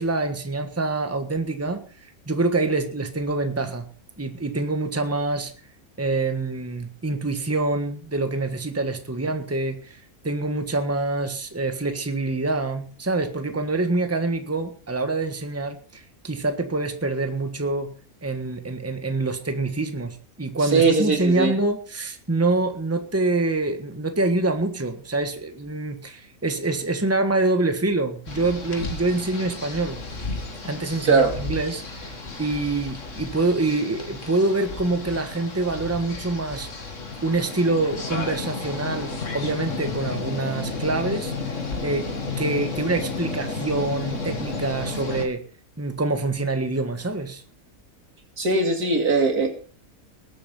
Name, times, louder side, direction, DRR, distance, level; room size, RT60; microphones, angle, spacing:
voice 1, 0.0-1.8 2.3-3.8 4.2-5.5 6.0-10.0 10.2-17.9 18.2-30.0 30.6-36.7 37.2-41.6 41.8-42.1 42.4-45.4 45.8-47.4, right 2 dB, 10° right, 7 dB, 1.5 m, -26 dB
voice 2, 20.7-21.5 31.1-31.3 48.4-49.5, right 3 dB, 90° right, 4 dB, 3.3 m, -20 dB
sound 1, 28.3-45.3, left 3 dB, 55° left, 2.6 m, -32 dB
20.0 x 8.5 x 5.5 m, 0.41 s
omnidirectional pair, 1.6 m